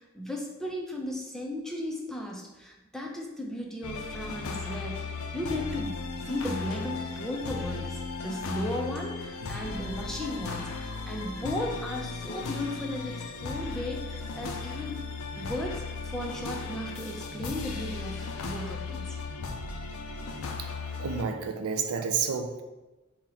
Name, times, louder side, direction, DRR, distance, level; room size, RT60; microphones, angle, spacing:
voice 1, 0.0-15.0 15.4-19.1, left 1 dB, ahead, 0 dB, 0.4 m, -36 dB
sound 1, 3.8-21.2, left 4 dB, 80° left, 0.5 m, -36 dB
voice 2, 21.0-22.6, right 5 dB, 85° right, 5 dB, 0.4 m, -30 dB
4.2 x 2.1 x 3.8 m, 1.1 s
head